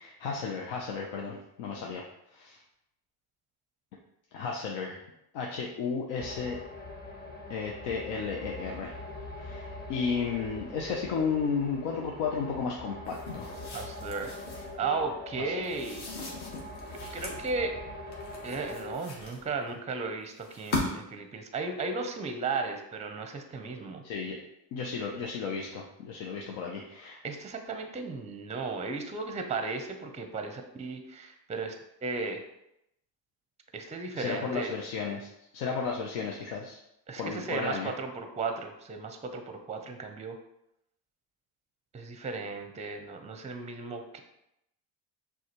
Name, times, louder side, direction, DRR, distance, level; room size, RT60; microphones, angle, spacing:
voice 1, 0.0-2.1 2.3-2.6 4.3-5.0 5.3-6.6 7.5-9.0 9.4-13.5 15.4-15.5 24.0-24.4 24.7-27.2 34.1-35.3 35.5-36.8 37.2-37.9, left 5 dB, 75° left, -1 dB, 0.7 m, -33 dB
sound 1, 6.2-19.0, left 2 dB, 20° left, 0.8 m, -43 dB
sound 2, 13.1-14.7 15.6-17.5 18.1-19.7 20.4-21.2, left 3 dB, 60° left, 1.3 m, -38 dB
voice 2, 13.7-14.3 14.8-16.0 16.9-17.7 18.4-24.0 27.2-31.7 32.0-32.4 33.7-34.7 37.1-40.4 41.9-44.2, right 4 dB, 15° right, 6 dB, 0.5 m, -35 dB
6.1 x 2.4 x 2.9 m, 0.82 s
supercardioid pair, 90°, 45 cm